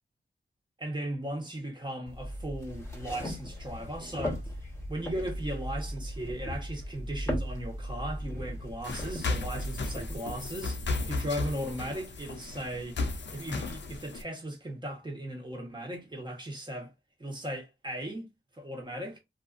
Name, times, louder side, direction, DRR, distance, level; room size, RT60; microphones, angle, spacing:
voice 1, 0.8-4.4 4.9-13.0 13.3-16.9 17.2-19.2, right 1 dB, 25° right, 1.2 m, -37 dB
sound 1, 2.1-10.2, equal, 15° left, 1.2 m, -37 dB
sound 2, 8.8-14.2, left 3 dB, 65° left, 0.6 m, -35 dB
2.6 x 2.5 x 2.5 m
cardioid pair, 55°, 20 cm